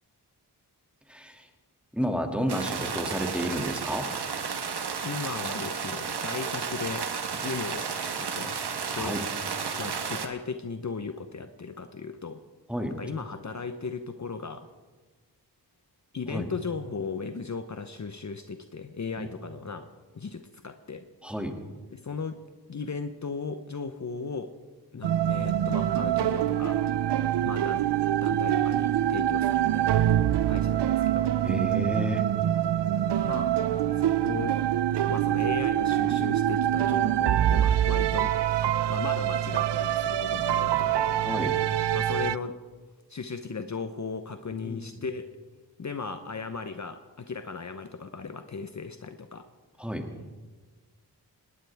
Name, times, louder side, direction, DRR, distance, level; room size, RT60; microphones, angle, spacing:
voice 1, 1.1-1.5 1.9-4.1 8.9-9.2 12.7-12.9 16.3-16.5 19.2-19.3 21.2-21.5 31.4-32.2 41.2-41.5 44.6-44.9 49.8-50.1, equal, 5° right, 3 dB, 2.4 m, -31 dB
sound 1, 2.5-10.3, right 6 dB, 75° right, 1.3 m, -32 dB
voice 2, 5.0-7.1 7.3-9.2 9.8-12.4 13.0-14.7 16.1-19.9 20.1-21.1 21.9-22.4 22.7-24.5 24.9-26.8 27.4-27.9 28.2-30.0 30.5-31.3 33.2-33.5 33.9-34.6 35.1-38.3 38.9-41.0 41.9-42.6 43.1-45.3 45.8-49.4, left 5 dB, 45° left, 8 dB, 0.9 m, -36 dB
Mysterious Background Music Orchestra, 25.0-42.4, right 11 dB, 90° right, 0.5 m, -25 dB
19.0 x 18.5 x 3.5 m, 1.3 s
cardioid pair, 60°, 40 cm